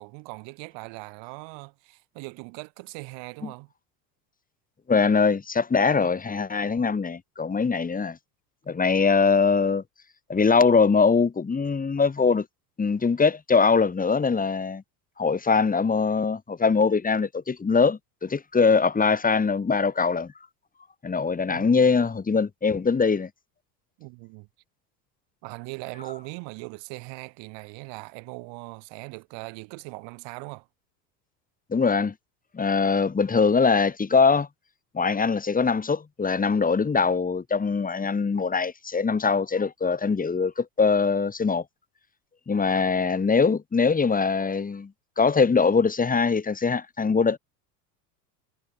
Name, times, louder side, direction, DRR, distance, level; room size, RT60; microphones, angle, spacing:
voice 1, 0.0-3.7 21.5-21.9 24.0-24.5 25.4-30.7, right 29 dB, 60° right, 7.3 m, -40 dB
voice 2, 4.9-8.2 8.7-9.8 10.3-12.4 12.8-14.8 15.2-20.3 21.0-23.3 31.7-32.1 32.5-34.5 34.9-41.6 42.5-44.9 45.2-47.4, left 5 dB, 15° left, 2.7 m, -22 dB
hypercardioid pair, 95°, 49 cm